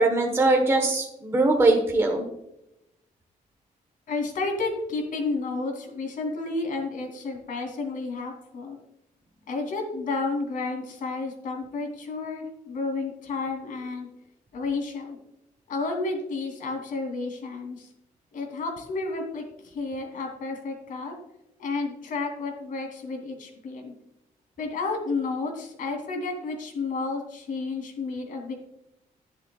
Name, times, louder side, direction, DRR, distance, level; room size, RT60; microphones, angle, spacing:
voice 1, 0.0-2.3, right 2 dB, 20° right, 2 dB, 1.2 m, -21 dB
voice 2, 4.1-8.8 9.5-14.1 14.5-15.2 15.7-17.9 18.3-21.1 21.6-23.9 24.6-28.5, left 3 dB, 70° left, 2 dB, 2.9 m, -31 dB
11.5 x 11.0 x 2.4 m, 0.87 s
wide cardioid pair, 175°, 14 cm